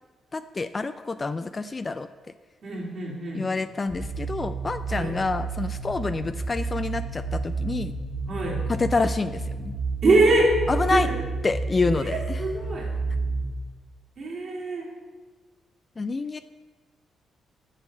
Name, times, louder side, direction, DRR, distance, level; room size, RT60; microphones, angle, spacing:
voice 1, 0.3-2.1 3.3-7.9 8.7-9.7 10.7-11.1 11.4-12.4 16.0-16.4, left 3 dB, 35° left, 11 dB, 0.3 m, -27 dB
voice 2, 2.6-3.5 4.9-5.1 8.3-8.6 10.0-10.5 10.9-11.0 11.9-12.9 14.2-14.9, right 2 dB, 55° right, -2 dB, 2.5 m, -24 dB
sound 1, 3.9-13.4, right 4 dB, 75° left, 1.9 m, -31 dB
6.5 x 6.2 x 6.4 m, 1.3 s
cardioid pair, 70°, 0 cm